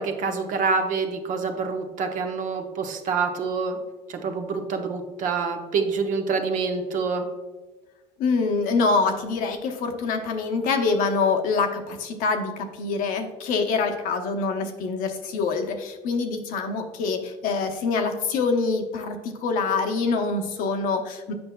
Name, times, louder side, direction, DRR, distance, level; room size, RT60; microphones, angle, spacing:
voice 1, 0.0-3.8 4.2-7.2, right 4 dB, 65° right, 5 dB, 0.9 m, -26 dB
voice 2, 8.2-21.3, left 4 dB, 75° left, 5 dB, 0.8 m, -25 dB
7.8 x 5.5 x 2.2 m, 1.3 s
supercardioid pair, 85°, 15 cm